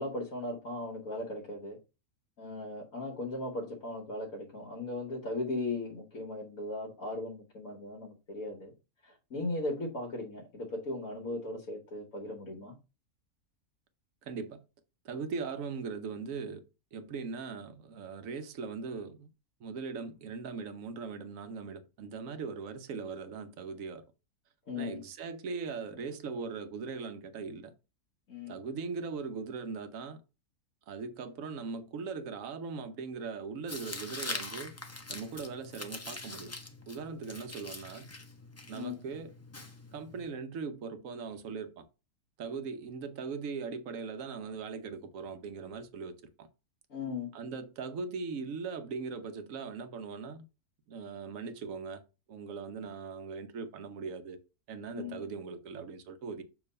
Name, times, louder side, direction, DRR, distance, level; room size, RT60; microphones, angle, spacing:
voice 1, 0.0-1.8 2.4-8.7 9.0-12.7 24.7-25.0 28.3-28.6 38.7-39.0 46.9-47.3 54.9-55.2, left 2 dB, 65° left, 1.5 m, -37 dB
voice 2, 14.2-14.6 15.0-16.6 16.9-19.3 19.6-24.0 24.8-27.7 28.5-30.2 30.9-34.7 35.1-36.5 36.9-38.1 38.7-39.3 39.9-41.8 42.4-46.5 47.3-50.4 50.9-52.0 52.3-54.4 54.7-56.4, right 5 dB, 65° right, 1.2 m, -40 dB
Tearing, 33.7-40.3, left 2 dB, 25° left, 0.3 m, -43 dB
7.1 x 3.0 x 5.3 m
omnidirectional pair, 1.6 m